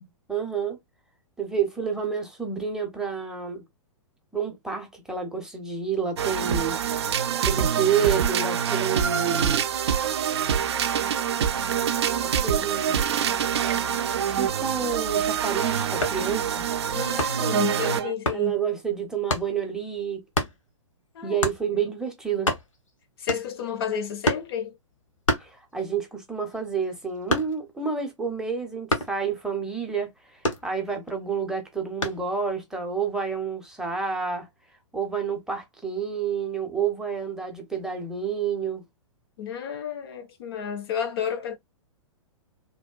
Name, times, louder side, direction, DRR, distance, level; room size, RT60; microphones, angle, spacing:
voice 1, 0.3-0.8 1.4-3.6 4.3-6.8 7.4-9.7 12.2-13.1 14.3-16.6 18.3-20.2 21.2-22.5 25.4-34.5 34.9-38.8, right 6 dB, 5° right, 0.6 m, -29 dB
sound 1, 6.2-18.1, right 8 dB, 55° right, 0.4 m, -25 dB
sound 2, 16.0-16.3 17.2-17.5 18.3-18.5 19.3-19.5 20.3-20.6 21.4-21.7 22.1-22.2 22.3-22.9 23.3-23.7 24.2-24.6 25.3-26.0 26.4-27.8 28.9-29.2 30.4-31.1 32.0-32.3, left 1 dB, 80° left, 0.8 m, -28 dB
voice 2, 16.9-18.6 21.1-21.4 23.2-24.7 39.4-41.6, left 8 dB, 50° left, 0.5 m, -31 dB
2.8 x 2.1 x 2.2 m
figure-of-eight pair, 110°, 16 cm